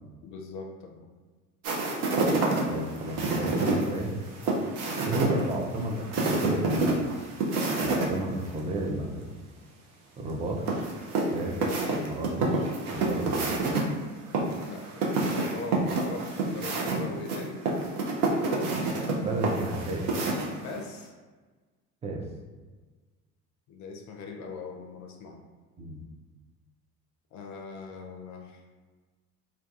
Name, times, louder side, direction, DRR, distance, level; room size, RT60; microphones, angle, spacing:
voice 1, 0.2-1.1 14.7-17.6 20.6-21.1 23.7-25.4 27.3-28.6, left 4 dB, 40° left, 2 dB, 0.5 m, -40 dB
sound 1, 1.6-8.1 8.4-8.5 10.7-13.8 14.3-20.8, right 3 dB, 80° right, 0.6 m, -28 dB
voice 2, 2.7-4.2 5.0-7.0 7.8-9.3 10.2-10.6 11.3-11.6 12.0-12.7 12.9-13.6 19.2-20.1 22.0-22.2 25.8-26.1, right 2 dB, 15° right, 0 dB, 0.3 m, -32 dB
2.3 x 2.2 x 2.6 m, 1.3 s
figure-of-eight pair, 60°, 44 cm